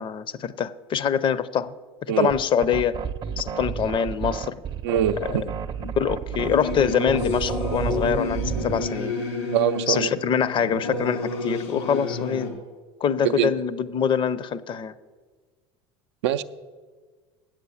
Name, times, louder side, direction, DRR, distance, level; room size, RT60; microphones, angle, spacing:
voice 1, 0.0-1.7 2.2-3.0 3.4-4.6 5.8-9.2 9.9-12.6 13.0-14.9, left 7 dB, 35° left, 17 dB, 0.5 m, -24 dB
sound 1, 2.3-8.9, right 7 dB, 35° right, 0.6 m, -31 dB
voice 2, 4.8-5.5 9.5-10.1 13.2-13.5 16.2-16.4, right 10 dB, 80° right, 10 dB, 0.5 m, -23 dB
Singing / Musical instrument, 6.3-12.5, left 3 dB, 90° left, 2.6 m, -30 dB
8.8 x 7.7 x 7.0 m, 1.4 s
supercardioid pair, 95°, 14 cm